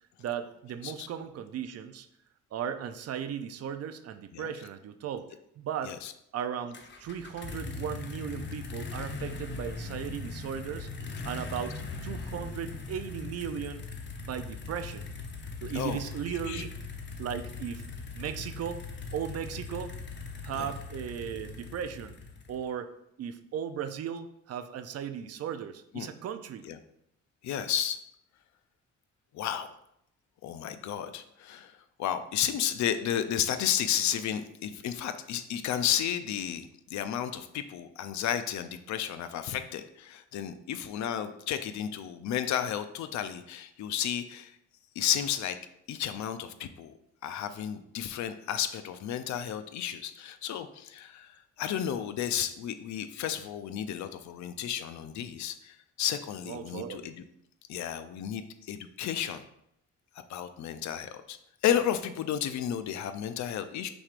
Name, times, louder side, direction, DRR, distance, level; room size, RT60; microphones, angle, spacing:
voice 1, 0.2-2.1 2.5-5.3 5.6-5.9 6.3-10.9 11.2-13.9 14.2-15.1 15.6-16.7 17.2-17.8 18.1-18.8 19.1-19.9 20.4-22.1 22.5-22.9 23.2-26.7 56.5-57.1, right 8 dB, 55° right, 9 dB, 0.5 m, -36 dB
sound 1, 6.7-22.7, left 4 dB, 40° left, 0.7 m, -40 dB
voice 2, 16.3-16.6 20.6-20.7 25.9-26.1 26.6-26.8 27.4-28.0 29.3-29.7 30.4-31.7 32.0-44.5 45.0-45.6 45.9-46.9 47.2-57.2 57.7-59.5 60.3-61.4 61.6-63.9, left 10 dB, 70° left, 10 dB, 0.5 m, -32 dB
6.0 x 3.4 x 2.5 m, 0.75 s
cardioid pair, 90°, 30 cm